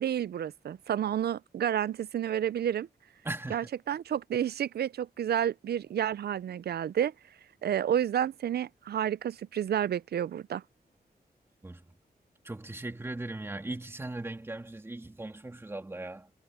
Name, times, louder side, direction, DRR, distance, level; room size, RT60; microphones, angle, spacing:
voice 1, 0.0-2.9 3.5-7.1 7.6-10.6, right 10 dB, 75° right, 0.4 m, -30 dB
voice 2, 3.2-3.7 11.6-11.9 12.4-16.3, right 2 dB, 15° right, 2.7 m, -38 dB
wide cardioid pair, 175°, 17 cm